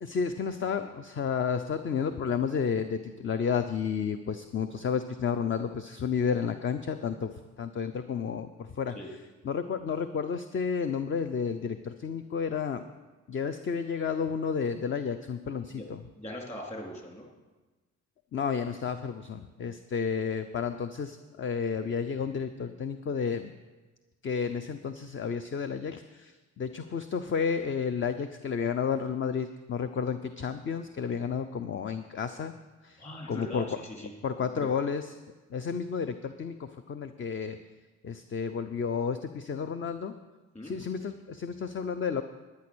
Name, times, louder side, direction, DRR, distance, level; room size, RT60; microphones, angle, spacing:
voice 1, 0.0-7.3 7.6-9.0 9.4-12.8 13.3-16.0 18.3-23.5 24.2-32.5 32.8-33.8 34.2-35.1 35.5-37.6 38.0-40.1 40.6-42.2, left 6 dB, 40° left, 9 dB, 0.6 m, -31 dB
voice 2, 16.2-17.3 33.0-34.1 34.6-34.7 40.5-40.8, left 1 dB, 25° left, -1 dB, 3.4 m, -40 dB
11.5 x 9.5 x 6.2 m, 1.2 s
cardioid pair, 90°, 30 cm